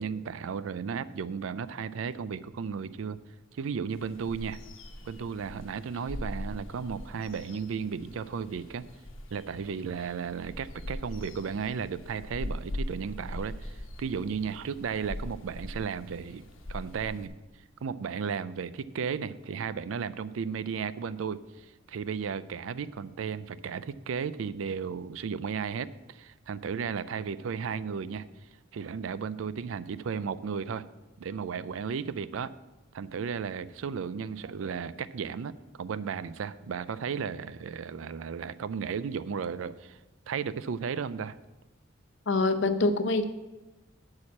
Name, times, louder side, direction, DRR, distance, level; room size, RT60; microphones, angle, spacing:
voice 1, 0.0-3.2 3.5-4.6 5.1-8.8 9.3-17.3 17.8-28.2 28.7-30.9 31.2-32.5 32.9-35.5 35.8-40.0 40.3-41.4, right 6 dB, 85° right, 16 dB, 0.4 m, -34 dB
sound 1, 3.9-17.3, left 1 dB, 80° left, 1.1 m, -41 dB
voice 2, 42.3-43.3, left 2 dB, 65° left, 10 dB, 0.7 m, -25 dB
8.4 x 4.9 x 7.2 m, 1.1 s
head